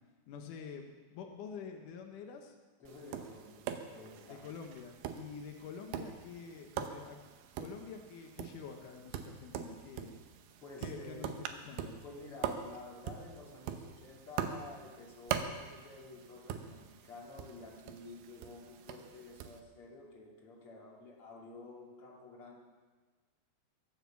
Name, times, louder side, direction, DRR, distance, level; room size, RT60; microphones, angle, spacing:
voice 1, 0.3-2.6 4.3-7.2 7.6-10.1 10.8-11.3 11.6-12.0, left 6 dB, 90° left, 3 dB, 1.8 m, -47 dB
voice 2, 2.8-3.6 3.9-4.5 10.6-11.4 12.0-22.6, left 3 dB, 35° left, -3 dB, 3.0 m, -51 dB
Tap, 2.9-19.6, right 9 dB, 80° right, 3.2 m, -43 dB
23.0 x 7.9 x 7.1 m, 1.4 s
omnidirectional pair, 5.2 m